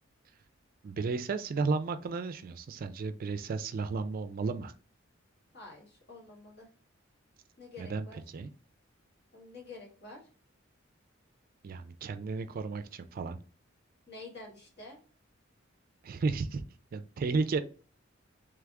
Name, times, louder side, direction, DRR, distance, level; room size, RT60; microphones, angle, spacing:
voice 1, 0.8-4.7 7.8-8.5 11.6-13.4 16.0-16.6 16.9-17.6, right 4 dB, 45° right, 11 dB, 0.3 m, -33 dB
voice 2, 5.5-6.7 7.6-8.2 9.3-10.2 14.1-15.0, left 3 dB, 55° left, -1 dB, 1.5 m, -48 dB
3.4 x 3.3 x 3.5 m, 0.39 s
head